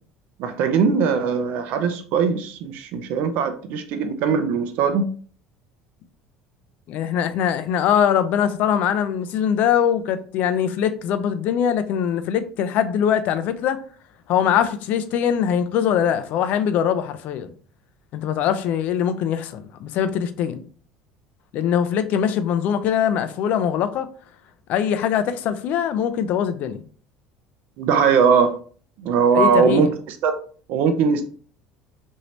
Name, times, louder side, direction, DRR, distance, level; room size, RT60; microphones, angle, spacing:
voice 1, 0.4-5.1 27.8-28.6 29.0-29.9 30.2-30.4 30.7-31.2, right 6 dB, 65° right, 0.4 m, -20 dB
voice 2, 6.9-13.8 14.3-17.5 18.1-20.7 21.5-24.1 24.7-26.8 29.3-29.9, left 8 dB, 60° left, 0.4 m, -22 dB
2.9 x 2.6 x 3.2 m
hypercardioid pair, 80°, 3 cm